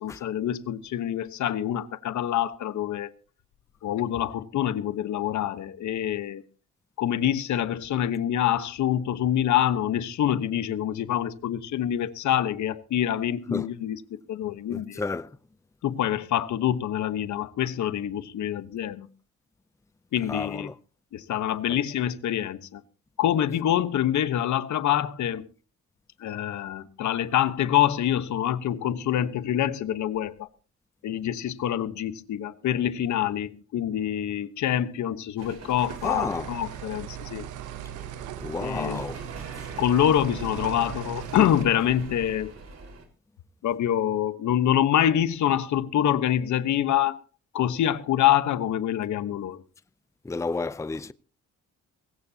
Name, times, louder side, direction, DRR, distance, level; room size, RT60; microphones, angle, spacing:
voice 1, 0.0-3.1 3.8-6.4 7.0-14.0 14.3-15.0 15.8-19.1 20.1-20.7 21.1-22.8 23.2-25.5 26.2-30.5 31.0-37.5 38.6-39.0 39.8-42.5 43.6-47.2 47.5-49.6, left 11 dB, 70° left, 1.2 m, -26 dB
voice 2, 14.7-15.4 20.3-20.7 21.7-21.8 36.0-36.5 38.4-39.2 50.2-51.1, left 3 dB, 10° left, 0.6 m, -31 dB
sound 1, 35.4-43.0, right 3 dB, 55° right, 4.7 m, -43 dB
sound 2, 35.8-41.6, right 12 dB, 85° right, 1.0 m, -39 dB
20.0 x 17.0 x 2.9 m
cardioid pair, 90°, 30 cm